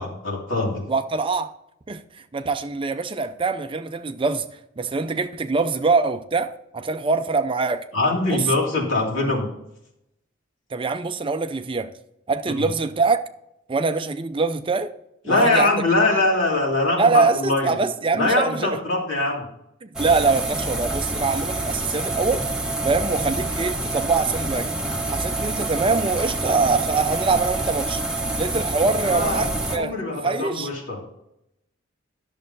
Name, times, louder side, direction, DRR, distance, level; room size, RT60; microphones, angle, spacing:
voice 1, 0.0-0.8 7.9-9.5 12.5-12.6 15.3-17.8 18.1-19.5 29.0-31.0, left 2 dB, 75° left, 2.8 m, -22 dB
voice 2, 0.9-1.5 1.9-4.5 4.8-7.8 8.3-8.4 10.7-11.9 12.3-13.2 13.7-14.9 15.2-15.8 17.0-18.7 19.8-22.5 22.8-24.7 25.1-28.0 28.4-30.7, right 4 dB, 25° right, 0.5 m, -23 dB
sound 1, 20.0-29.8, right 2 dB, 5° right, 1.0 m, -27 dB
11.5 x 6.8 x 3.9 m
head